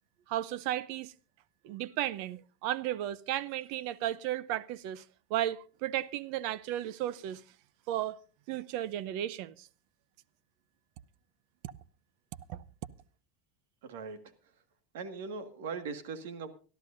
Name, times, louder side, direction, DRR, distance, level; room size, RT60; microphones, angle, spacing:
voice 1, 0.3-1.1 1.6-5.0 5.3-7.4 7.9-8.2 8.5-9.7 12.5-12.6, right 13 dB, 50° right, 0.6 m, -34 dB
voice 2, 13.8-14.2 14.9-16.5, right 5 dB, 80° right, 1.8 m, -39 dB
25.0 x 12.5 x 2.6 m
supercardioid pair, 165°, 0 cm